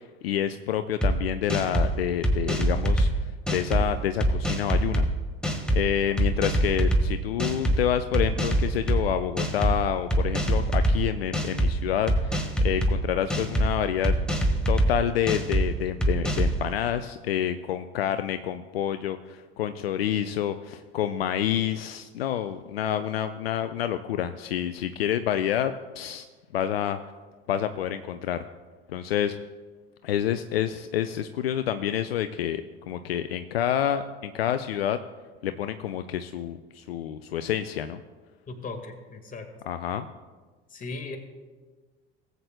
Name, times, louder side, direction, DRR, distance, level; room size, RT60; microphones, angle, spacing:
voice 1, 0.2-5.0 5.7-14.1 14.7-26.3 26.5-27.0 27.5-28.4 28.9-29.4 30.0-35.0 35.4-38.0 39.7-40.1, left 10 dB, 75° left, 10 dB, 0.5 m, -28 dB
sound 1, 1.0-1.1 1.5-1.9 2.2-3.1 3.5-3.8 4.2-5.0 5.4-5.8 6.2-7.0 7.4-7.8 8.1-9.0 9.4-9.8 10.1-11.0 11.3-11.7 12.1-12.9 13.3-13.7 14.0-14.9 15.3-15.6 16.0-16.5, equal, 5° left, 1.5 m, -23 dB
voice 2, 38.5-39.5 40.7-41.2, left 3 dB, 25° left, 4 dB, 1.7 m, -37 dB
19.0 x 8.0 x 2.2 m, 1.4 s
figure-of-eight pair, 65°, 30 cm